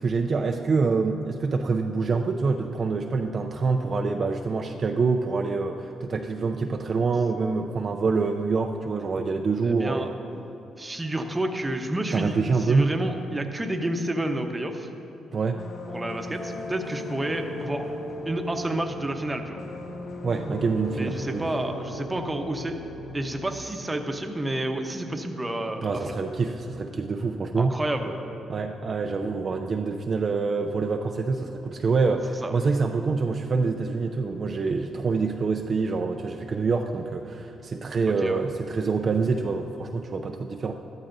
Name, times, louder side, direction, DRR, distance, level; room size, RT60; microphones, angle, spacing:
voice 1, 0.0-10.2 12.1-12.9 15.3-15.6 20.2-21.5 25.8-27.7 28.5-40.7, right 4 dB, 45° right, 3 dB, 0.5 m, -26 dB
voice 2, 9.6-10.1 10.8-14.9 15.9-17.9 18.2-19.6 21.0-22.8 23.1-26.1 27.6-28.2 32.4-32.5 38.2-38.4, right 1 dB, 15° right, 5 dB, 0.9 m, -30 dB
sound 1, 15.5-23.5, left 1 dB, 55° left, 0.8 m, -37 dB
13.0 x 12.5 x 2.6 m, 2.8 s
cardioid pair, 90°, 0 cm